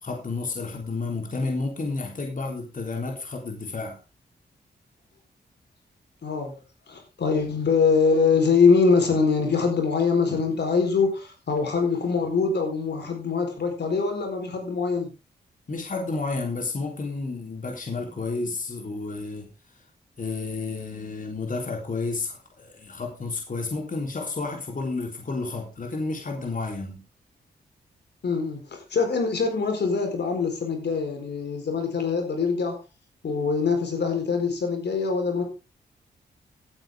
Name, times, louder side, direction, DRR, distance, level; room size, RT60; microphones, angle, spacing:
voice 1, 0.0-4.0 15.7-19.8 20.2-27.0, left 3 dB, 45° left, 2 dB, 3.7 m, -31 dB
voice 2, 6.2-6.5 6.9-15.1 28.2-32.8 33.2-35.4, left 5 dB, 70° left, 4 dB, 4.2 m, -23 dB
15.0 x 9.1 x 3.7 m, 0.28 s
cardioid pair, 55°, 18 cm